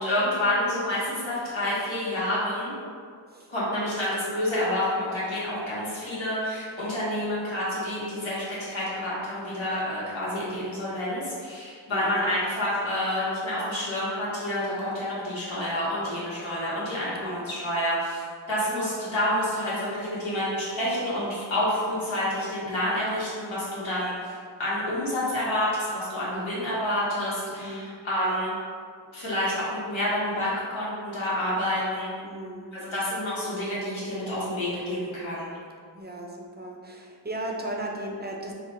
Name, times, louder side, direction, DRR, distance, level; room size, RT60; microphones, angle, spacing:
voice 1, 0.0-2.8 3.5-18.2 18.5-24.3 24.6-28.6 29.1-32.1 32.9-35.5, left 1 dB, 85° left, -9 dB, 1.4 m, -28 dB
voice 2, 11.9-12.3 17.2-17.5 27.6-27.9 32.2-32.9 35.9-38.5, right 1 dB, 20° right, 0 dB, 0.5 m, -36 dB
3.8 x 2.3 x 4.3 m, 2.1 s
wide cardioid pair, 80°, 46 cm